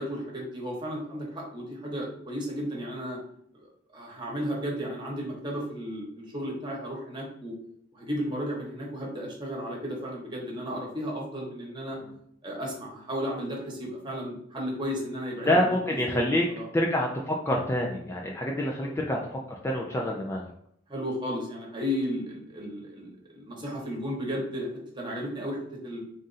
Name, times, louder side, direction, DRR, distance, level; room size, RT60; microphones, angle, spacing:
voice 1, 0.0-3.2 3.5-3.7 3.9-7.5 7.9-12.0 12.4-16.7 18.8-18.9 20.9-24.7 24.9-26.0, equal, 25° right, -2 dB, 1.1 m, -34 dB
voice 2, 15.5-16.4 16.7-19.2 19.6-20.4, left 1 dB, 15° left, -1 dB, 0.4 m, -26 dB
3.7 x 2.5 x 4.0 m, 0.69 s
head